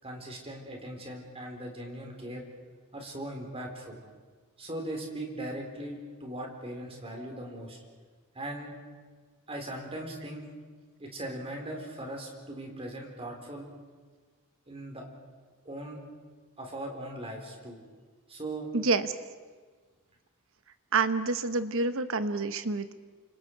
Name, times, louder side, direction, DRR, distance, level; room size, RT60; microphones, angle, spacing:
voice 1, 0.0-2.4 2.9-4.0 4.6-7.8 8.3-8.7 9.5-10.5 11.0-13.7 14.7-15.1 15.6-16.0 16.6-17.8 18.3-18.7, right 1 dB, 25° right, 1 dB, 4.1 m, -39 dB
voice 2, 18.7-19.1 20.9-22.9, right 3 dB, 65° right, 11 dB, 1.1 m, -28 dB
29.0 x 26.5 x 4.7 m, 1.5 s
head